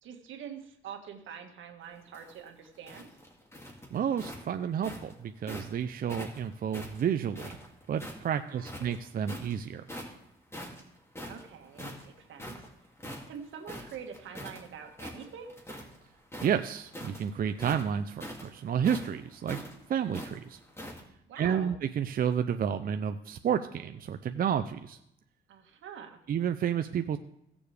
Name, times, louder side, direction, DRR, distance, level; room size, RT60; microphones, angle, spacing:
voice 1, 0.0-3.1 8.4-8.9 11.2-12.7 13.3-15.6 21.3-21.7 25.5-26.2, right 7 dB, 75° right, 4 dB, 1.7 m, -45 dB
sound 1, 2.0-5.7 6.1-8.3 8.6-9.5 9.9-10.2 10.5-14.6 14.9-16.0 16.3-21.0, equal, 15° left, 2.5 m, -43 dB
voice 2, 3.9-7.6 7.9-9.8 16.4-19.6 19.9-20.6 21.4-25.0 26.3-27.2, right 8 dB, 45° right, 9 dB, 0.5 m, -30 dB
16.5 x 7.0 x 3.4 m, 0.78 s
cardioid pair, 90°, 20 cm